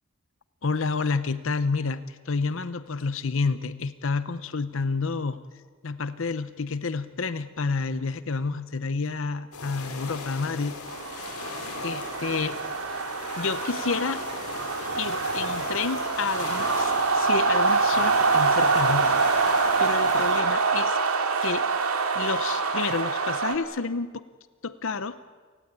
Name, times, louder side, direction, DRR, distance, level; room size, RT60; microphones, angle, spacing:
voice 1, 0.6-5.4 5.8-10.8 11.8-12.6 13.4-14.2 15.0-19.1 19.8-21.0 21.4-21.7 22.1-24.2 24.6-25.1, left 4 dB, 60° left, 13 dB, 0.7 m, -29 dB
sound 1, 9.5-20.4, left 3 dB, 90° left, 4.6 m, -37 dB
sound 2, 10.9-23.6, right 4 dB, 75° right, 2.2 m, -25 dB
28.5 x 18.5 x 9.5 m, 1.5 s
head